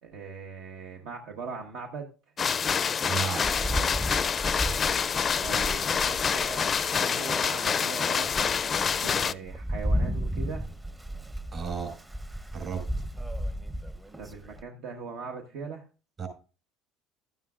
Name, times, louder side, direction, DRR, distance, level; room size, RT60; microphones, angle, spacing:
voice 1, 0.0-2.1 5.3-8.7 9.0-10.7 14.2-15.9, right 5 dB, 70° right, 3 dB, 1.3 m, -40 dB
sound 1, 2.4-9.3, left 6 dB, 35° left, 0.4 m, -27 dB
voice 2, 3.1-3.5 11.5-12.0 12.5-12.9 16.2-16.3, right 6 dB, 40° right, 6 dB, 5.1 m, -33 dB
Rain, 3.4-6.9 7.5-7.6 8.0-14.6, equal, 15° right, 0.8 m, -34 dB
12.5 x 9.3 x 2.5 m, 0.34 s
supercardioid pair, 80°, 0 cm